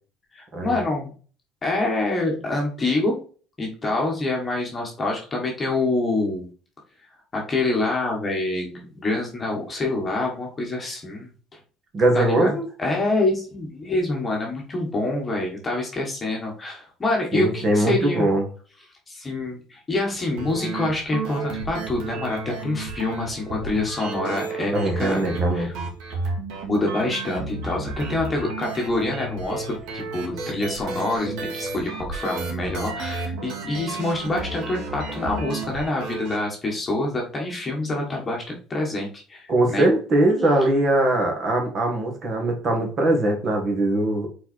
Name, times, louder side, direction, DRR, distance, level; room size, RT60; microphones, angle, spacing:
voice 1, 0.3-1.1 1.6-3.2 3.6-6.5 7.3-11.6 12.1-18.3 19.1-25.2 25.5-25.7 26.6-39.9, left 2 dB, 15° left, -1 dB, 1.5 m, -26 dB
voice 2, 11.9-12.7 17.3-18.4 24.7-25.7 39.5-44.3, right 1 dB, 30° right, 2 dB, 1.7 m, -21 dB
sound 1, 20.4-36.4, right 3 dB, 75° right, 2.3 m, -32 dB
5.7 x 4.2 x 4.3 m, 0.40 s
cardioid pair, 180°, 0 cm